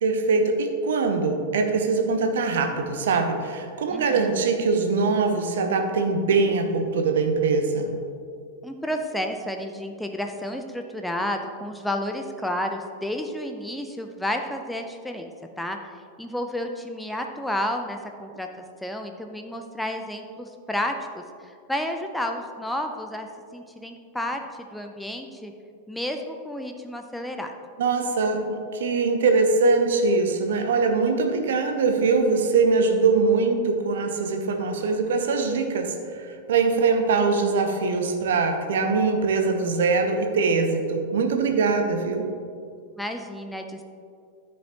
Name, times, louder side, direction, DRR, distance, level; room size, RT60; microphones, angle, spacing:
voice 1, 0.0-8.0 27.8-42.2, right 4 dB, 60° right, 5 dB, 0.9 m, -22 dB
voice 2, 3.9-4.2 8.6-15.3 15.6-15.8 16.2-20.9 21.4-24.4 24.7-25.5 25.9-27.5 43.0-43.8, left 1 dB, 5° left, 4 dB, 0.6 m, -31 dB
13.0 x 5.4 x 2.9 m, 2.3 s
figure-of-eight pair, 90°, 0 cm